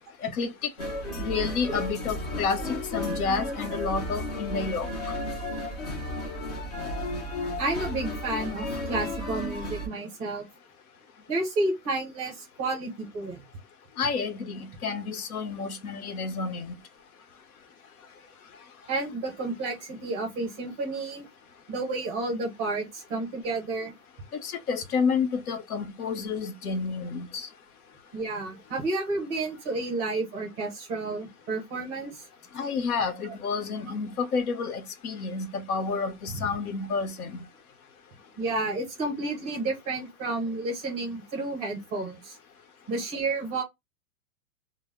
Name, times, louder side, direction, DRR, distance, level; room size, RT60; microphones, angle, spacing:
voice 1, 0.2-0.7 1.2-4.9 14.0-16.7 24.4-27.5 32.5-37.4, left 5 dB, 80° left, 0.8 m, -30 dB
sound 1, 0.8-9.9, left 1 dB, 30° left, 0.3 m, -33 dB
voice 2, 7.6-10.5 11.3-13.4 18.9-21.3 21.7-23.9 28.1-32.2 33.2-33.3 36.3-36.5 38.4-42.4 42.9-43.6, right 2 dB, 15° right, 0.5 m, -31 dB
2.0 x 2.0 x 3.4 m
hypercardioid pair, 155°, 44 cm